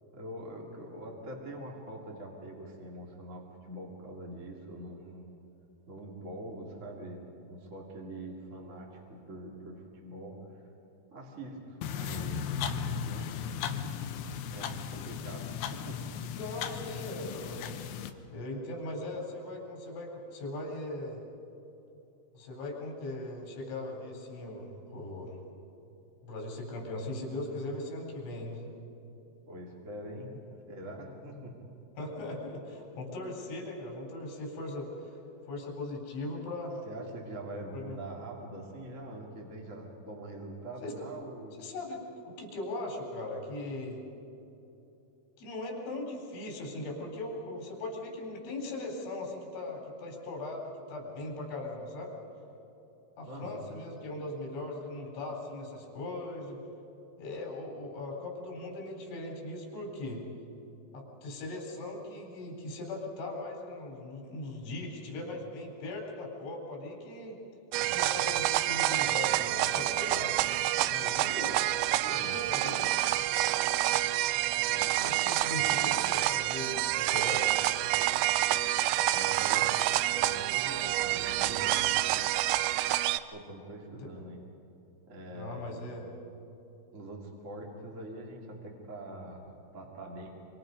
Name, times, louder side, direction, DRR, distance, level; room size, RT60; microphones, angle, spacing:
voice 1, 0.1-5.3 5.9-10.4 11.1-12.7 13.1-13.3 14.5-16.0 29.5-30.3 30.7-31.5 36.9-41.5 53.3-53.6 72.0-72.4 74.7-76.1 79.1-79.7 80.1-82.4 83.3-84.4 85.1-85.8 86.9-90.3, right 1 dB, 25° right, -1 dB, 1.7 m, -44 dB
sound 1, 11.8-18.1, left 7 dB, 75° left, 2.7 m, -36 dB
voice 2, 16.4-17.8 18.3-21.2 22.3-25.4 26.2-28.6 32.0-35.2 35.5-36.8 37.7-38.0 40.8-40.9 41.6-44.0 45.4-52.1 53.2-56.6 57.2-60.2 60.9-67.4 67.9-70.3 70.9-71.5 72.1-72.9 75.0-75.8 76.1-76.7 77.0-77.6 85.3-86.1, left 2 dB, 90° left, 0 dB, 6.4 m, -39 dB
sound 2, 67.7-83.2, right 15 dB, 80° right, 2.7 m, -28 dB
26.0 x 25.5 x 5.3 m, 2.9 s
omnidirectional pair, 5.4 m